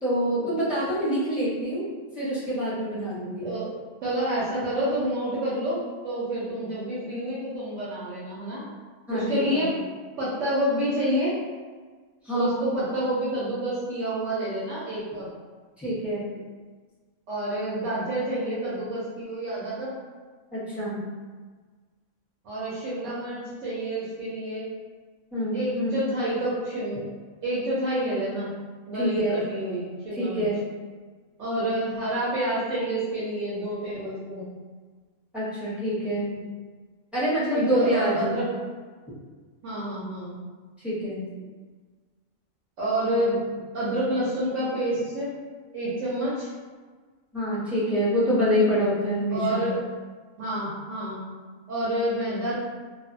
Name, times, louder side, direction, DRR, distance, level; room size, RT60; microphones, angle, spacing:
voice 1, 0.0-1.8 2.2-3.5 9.1-9.6 12.2-12.6 15.8-16.2 20.5-21.0 25.3-26.0 29.0-29.4 30.1-30.6 35.3-36.3 37.1-38.4 40.8-41.2 47.3-49.7, equal, ahead, -11 dB, 0.7 m, -26 dB
voice 2, 4.0-8.6 9.1-9.7 10.2-11.3 12.3-15.3 17.3-19.9 22.4-24.7 25.5-27.0 27.4-28.5 28.9-30.5 31.4-34.5 36.3-36.4 37.5-38.5 39.6-40.4 42.8-43.4 43.7-45.3 45.7-46.5 49.3-49.8 50.4-51.2 51.7-52.5, right 1 dB, 65° right, -8 dB, 1.0 m, -28 dB
2.4 x 2.2 x 2.5 m, 1.4 s
omnidirectional pair, 1.5 m